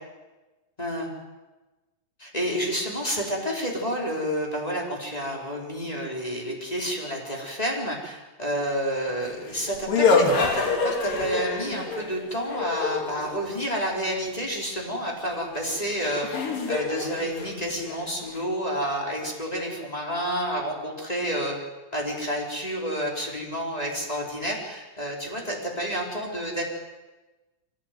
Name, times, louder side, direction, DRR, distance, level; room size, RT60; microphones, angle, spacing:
voice 1, 0.8-1.1 2.2-16.3 16.7-21.6 21.9-26.6, equal, 10° left, -1 dB, 4.5 m, -29 dB
sound 1, 9.2-13.5 15.3-15.4 16.0-18.4, left 4 dB, 80° left, 4.4 m, -26 dB
24.0 x 17.5 x 9.5 m, 1.2 s
omnidirectional pair, 3.9 m